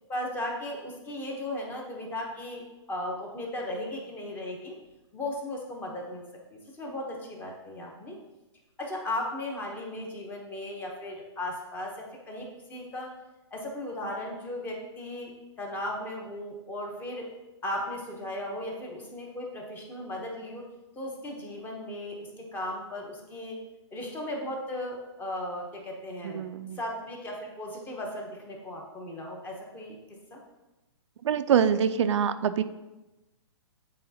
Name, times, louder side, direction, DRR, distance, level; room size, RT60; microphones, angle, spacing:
voice 1, 0.0-2.6 2.9-4.8 5.1-6.2 6.5-8.2 8.8-13.1 13.5-17.3 17.6-20.6 20.9-23.6 23.9-26.4 26.7-30.4, left 1 dB, 10° left, 0 dB, 0.8 m, -36 dB
voice 2, 26.2-26.8 31.2-32.6, right 8 dB, 70° right, 11 dB, 0.4 m, -25 dB
8.5 x 4.0 x 2.8 m, 1.0 s
hypercardioid pair, 155°, 15 cm